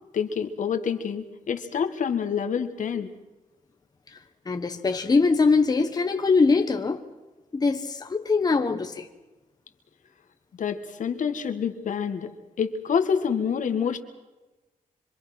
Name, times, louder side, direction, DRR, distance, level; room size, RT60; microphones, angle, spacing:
voice 1, 0.1-3.1 10.5-12.3 12.6-14.0, left 7 dB, 65° left, 1.8 m, -27 dB
voice 2, 4.5-7.0 7.5-9.1, left 4 dB, 30° left, 1.2 m, -22 dB
26.5 x 24.0 x 6.0 m
wide cardioid pair, 135°, 14 cm